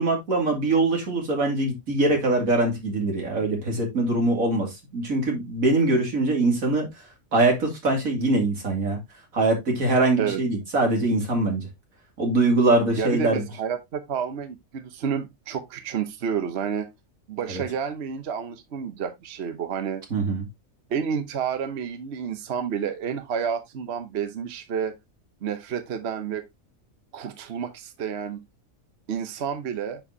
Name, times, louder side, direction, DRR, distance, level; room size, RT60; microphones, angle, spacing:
voice 1, 0.0-6.9 7.3-9.0 9.3-11.7 12.2-13.4 17.5-17.6 20.1-20.4, right 2 dB, 85° right, 2.8 m, -23 dB
voice 2, 13.0-16.9 17.3-20.0 20.9-24.9 25.4-26.5 27.1-28.4 29.1-30.0, right 7 dB, 55° right, 1.1 m, -30 dB
9.9 x 4.6 x 2.7 m
omnidirectional pair, 1.4 m